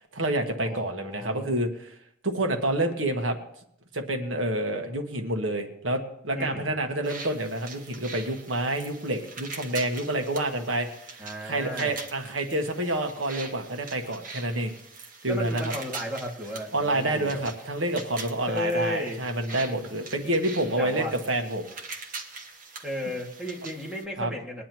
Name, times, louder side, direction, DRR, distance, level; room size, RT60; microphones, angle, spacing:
voice 1, 0.1-1.9 2.2-3.4 3.9-10.9 11.1-14.7 15.2-15.7 16.7-21.7 24.2-24.3, right 1 dB, 90° right, 4 dB, 1.5 m, -28 dB
voice 2, 0.6-1.5 6.3-6.7 11.2-11.9 15.3-17.4 18.5-19.2 20.8-21.1 22.8-24.6, equal, 5° right, -4 dB, 2.3 m, -34 dB
sound 1, 7.0-24.0, right 4 dB, 45° right, 1.4 m, -43 dB
21.5 x 10.0 x 3.0 m, 0.71 s
head